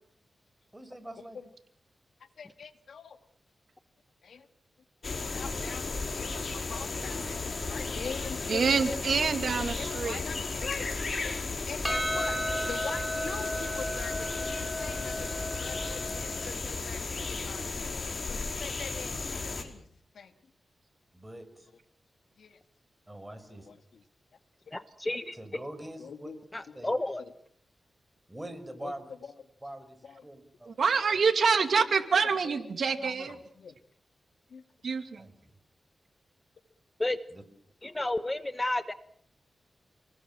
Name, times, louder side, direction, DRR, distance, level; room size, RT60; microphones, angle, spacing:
voice 1, 0.7-1.4 15.7-15.9 21.1-21.7 23.1-23.7 25.4-26.3 26.7-26.9 28.3-29.1 29.6-30.7 32.8-33.3 35.2-35.5 37.3-37.4, right 1 dB, 15° right, 9 dB, 5.7 m, -44 dB
voice 2, 2.4-3.2 4.2-4.5 5.0-9.2 9.7-10.9 11.2-18.0 18.3-19.9 20.1-20.3 22.4-22.6 23.5-24.0 26.0-26.4 26.7-26.8 27.2-27.3 28.8-28.9 29.2-29.3 30.0-30.3 32.4-32.6 33.0-33.8 34.5-34.6, left 6 dB, 85° left, 9 dB, 2.1 m, -44 dB
sound 1, 5.0-19.6, left 3 dB, 50° left, 5.0 m, -34 dB
voice 3, 8.5-10.2 30.7-33.4 34.8-35.3, right 5 dB, 70° right, 9 dB, 2.5 m, -26 dB
Percussion, 11.8-16.5, equal, 5° left, 5.2 m, -34 dB
voice 4, 24.7-25.6 26.5-27.2 37.0-37.2 37.8-38.9, left 2 dB, 20° left, 12 dB, 1.2 m, -31 dB
29.0 x 20.0 x 7.5 m, 0.64 s
cardioid pair, 70°, 0 cm